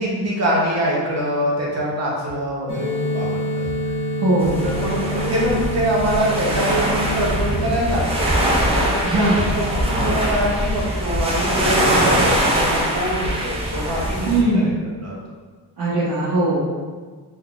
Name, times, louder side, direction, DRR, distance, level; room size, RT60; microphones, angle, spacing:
voice 1, 0.0-2.9 3.1-3.7 4.6-8.4 8.6-9.2 9.5-14.6 15.0-15.1, equal, 45° right, -4 dB, 0.8 m, -24 dB
sound 1, 2.7-7.7, equal, 45° left, 1.0 m, -27 dB
voice 2, 4.2-4.7 9.0-9.5 14.2-14.7 15.8-16.6, right 2 dB, 70° right, -12 dB, 1.0 m, -19 dB
sound 2, 4.4-14.4, right 1 dB, 15° right, 0.3 m, -22 dB
3.7 x 2.6 x 2.3 m, 1.5 s
wide cardioid pair, 170°, 38 cm